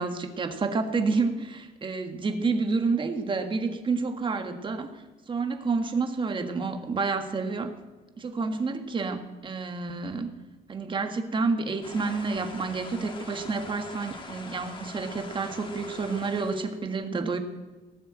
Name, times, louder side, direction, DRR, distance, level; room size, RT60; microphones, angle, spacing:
voice 1, 0.0-4.9 5.3-7.7 8.2-10.3 10.7-17.4, right 4 dB, 30° right, 6 dB, 1.7 m, -29 dB
sound 1, 11.8-16.8, left 3 dB, 30° left, 2.1 m, -43 dB
17.5 x 6.8 x 9.0 m, 1.3 s
cardioid pair, 110°, 17 cm